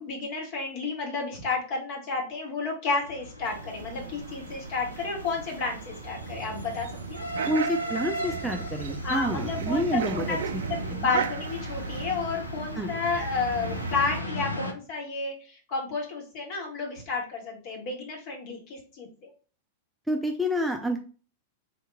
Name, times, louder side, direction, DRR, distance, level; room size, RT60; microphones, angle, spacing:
voice 1, 0.0-7.2 9.0-19.3, left 4 dB, 45° left, 0 dB, 1.6 m, -31 dB
sound 1, 3.0-14.7, equal, 90° left, 0.6 m, -37 dB
sound 2, 3.4-14.2, right 7 dB, 65° right, 0.4 m, -37 dB
voice 2, 7.5-10.6 12.8-12.9 20.1-21.0, equal, ahead, 2 dB, 0.6 m, -28 dB
3.6 x 2.8 x 3.6 m, 0.38 s
figure-of-eight pair, 95°, 0 cm